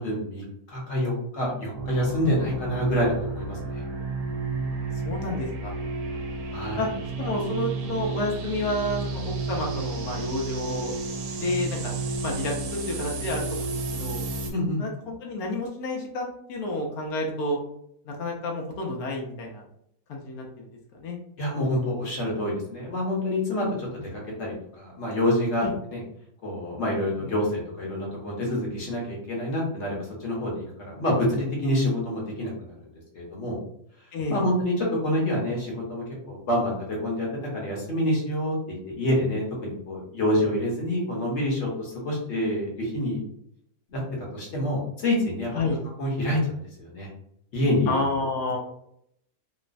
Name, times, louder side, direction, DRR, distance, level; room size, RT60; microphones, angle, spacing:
voice 1, 0.0-3.8 6.5-6.9 14.5-14.8 21.4-26.0 26.4-32.7 33.1-33.6 34.3-37.3 37.5-38.6 38.9-43.2 43.9-45.5 46.0-47.1 47.5-48.0, left 1 dB, 55° left, -3 dB, 1.1 m, -27 dB
sound 1, 1.8-14.5, right 3 dB, 80° right, 1.0 m, -31 dB
voice 2, 4.9-5.7 6.8-6.9 7.2-10.9 11.4-11.9 12.2-14.3 14.8-17.6 18.0-19.6 20.1-20.7 20.9-21.2 23.7-24.0 25.6-25.7 27.2-27.3 34.1-34.5 45.5-45.8 47.9-48.6, left 2 dB, 80° left, 0 dB, 1.1 m, -30 dB
3.0 x 2.1 x 2.4 m, 0.72 s
omnidirectional pair, 1.6 m